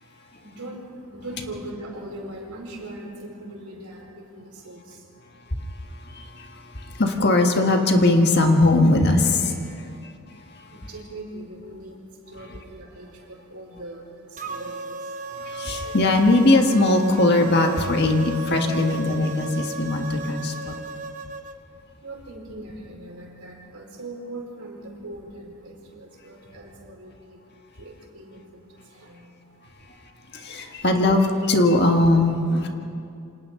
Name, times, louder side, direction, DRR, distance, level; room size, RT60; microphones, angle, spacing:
voice 1, 0.0-5.6 6.3-6.5 6.8-6.9 9.7-15.8 20.0-20.3 20.8-30.9, right 1 dB, 85° right, -1 dB, 4.8 m, -41 dB
voice 2, 5.6-10.7 15.3-20.7 30.3-32.7, left 2 dB, 50° left, 3 dB, 1.7 m, -20 dB
sound 1, 14.4-21.6, right 2 dB, 35° right, 0.9 m, -35 dB
28.5 x 26.0 x 3.9 m, 2.5 s
head